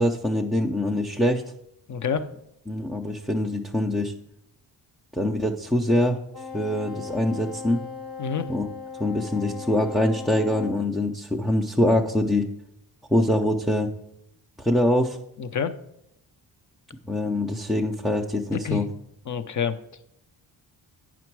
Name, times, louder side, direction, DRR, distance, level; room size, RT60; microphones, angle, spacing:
voice 1, 0.0-1.4 2.7-4.1 5.1-6.2 6.5-7.8 8.5-8.7 9.0-12.5 13.1-13.9 14.6-15.2 17.1-18.9, left 1 dB, ahead, 0 dB, 0.5 m, -24 dB
voice 2, 1.9-2.3 8.2-8.5 15.4-15.7 18.5-18.8 19.3-19.8, left 7 dB, 45° left, 11 dB, 0.6 m, -27 dB
Wind instrument woodwind instrument, 6.3-10.8, left 5 dB, 60° left, 1.5 m, -38 dB
9.4 x 6.0 x 4.6 m, 0.79 s
wide cardioid pair, 115°, 43 cm